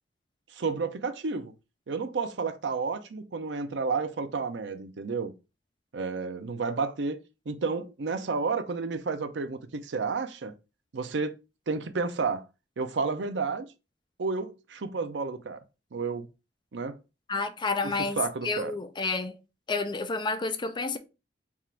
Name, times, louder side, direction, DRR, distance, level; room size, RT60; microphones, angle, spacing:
voice 1, 0.5-1.5 1.9-5.3 5.9-7.2 7.5-10.5 10.9-11.3 11.7-12.4 12.8-13.7 14.2-15.6 15.9-16.3 16.7-17.0 17.8-18.7, right 4 dB, 85° right, 0.6 m, -31 dB
voice 2, 17.3-18.2 18.4-19.4 19.7-21.0, left 3 dB, 25° left, 0.5 m, -30 dB
3.6 x 2.5 x 4.3 m
head